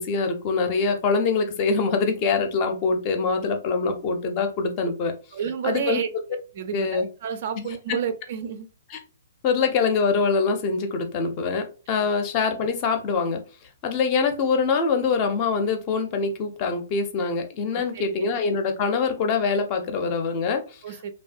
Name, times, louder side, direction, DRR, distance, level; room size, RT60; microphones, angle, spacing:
voice 1, 0.0-5.1 5.6-6.0 6.7-7.1 7.6-7.7 8.9-9.0 9.4-13.4 13.8-20.8, left 4 dB, 30° left, 0.5 m, -24 dB
voice 2, 5.3-6.1 6.5-8.7 12.0-12.1 17.7-18.3 20.8-21.1, right 7 dB, 45° right, 0.3 m, -30 dB
2.5 x 2.2 x 2.4 m
figure-of-eight pair, 120°, 0 cm